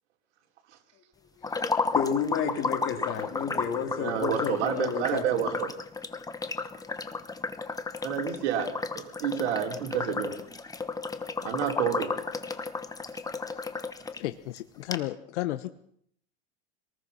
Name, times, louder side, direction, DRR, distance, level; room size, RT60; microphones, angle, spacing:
voice 1, 1.4-1.9 7.6-8.0 13.5-13.8 14.2-15.7, left 15 dB, 85° left, 10 dB, 1.3 m, -35 dB
sound 1, 1.4-14.2 14.6-14.7 14.9-15.0, left 4 dB, 10° left, 1.2 m, -33 dB
voice 2, 1.9-5.6, left 7 dB, 35° left, 6 dB, 3.4 m, -31 dB
voice 3, 4.0-5.7 8.0-10.4 11.4-12.1, right 9 dB, 80° right, 2 dB, 4.5 m, -29 dB
26.0 x 19.5 x 5.8 m, 0.66 s
supercardioid pair, 140°, 34 cm